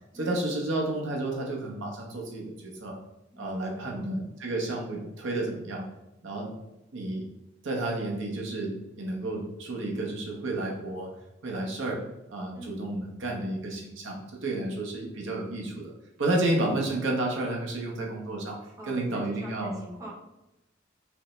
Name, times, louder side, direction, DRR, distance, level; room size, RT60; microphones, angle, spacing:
voice 1, 0.1-2.9 3.4-5.8 6.2-6.5 6.9-7.2 7.6-11.1 11.4-12.0 12.3-15.9 16.2-18.6 18.9-19.7, right 2 dB, 75° right, -1 dB, 0.8 m, -31 dB
voice 2, 3.3-4.1 12.5-12.8 18.8-20.1, right 1 dB, 15° right, -5 dB, 0.8 m, -45 dB
5.0 x 2.1 x 3.1 m, 0.92 s
head